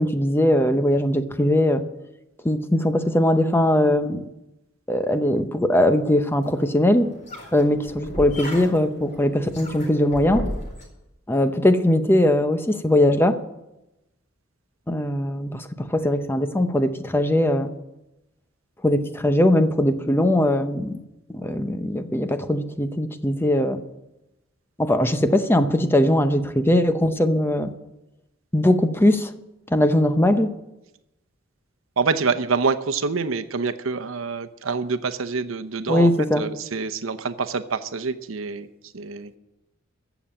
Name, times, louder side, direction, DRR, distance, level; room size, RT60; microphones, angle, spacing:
voice 1, 0.0-1.8 2.4-4.3 4.9-7.1 7.5-10.5 11.3-13.4 14.9-17.7 18.8-21.0 21.3-23.8 24.8-27.7 28.5-29.3 29.7-30.5 35.9-36.5, left 1 dB, 10° left, 9 dB, 0.7 m, -20 dB
sound 1, 6.4-10.8, equal, 35° left, 4.5 m, -35 dB
voice 2, 32.0-36.1 36.4-38.7 38.9-39.4, right 4 dB, 85° right, 9 dB, 0.8 m, -26 dB
14.5 x 7.1 x 8.7 m, 0.94 s
head